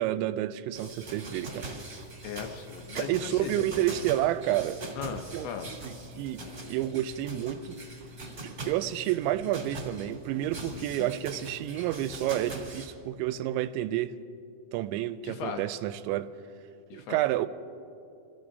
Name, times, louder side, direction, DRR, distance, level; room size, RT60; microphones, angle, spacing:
voice 1, 0.0-1.7 3.0-4.8 5.3-7.7 8.4-14.2 14.7-16.3 16.9-17.5, right 13 dB, 90° right, 2.9 m, -30 dB
sound 1, 0.7-12.9, right 2 dB, 30° right, 2.6 m, -42 dB
sound 2, 1.6-11.9, left 4 dB, 70° right, 1.9 m, -51 dB
voice 2, 2.2-3.6 5.0-5.7 10.7-11.2 15.2-15.6 16.9-17.2, left 8 dB, 80° left, 2.4 m, -38 dB
28.0 x 16.0 x 2.7 m
omnidirectional pair, 5.2 m